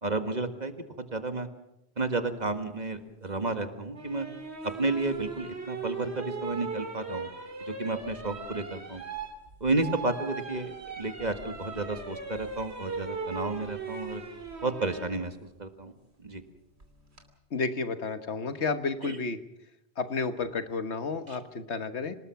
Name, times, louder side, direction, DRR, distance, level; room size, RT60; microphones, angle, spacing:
voice 1, 0.0-1.5 2.0-4.3 4.6-7.3 7.7-9.0 9.6-14.2 14.6-15.9 16.2-16.4 19.0-19.2 21.3-21.4, right 3 dB, 40° right, 8 dB, 1.8 m, -32 dB
sound 1, 3.9-15.1 16.8-17.2, right 4 dB, 75° right, 3.1 m, -39 dB
voice 2, 17.5-19.4 20.0-22.2, left 4 dB, 80° left, 9 dB, 1.6 m, -31 dB
26.0 x 19.5 x 5.9 m, 0.86 s
omnidirectional pair, 1.1 m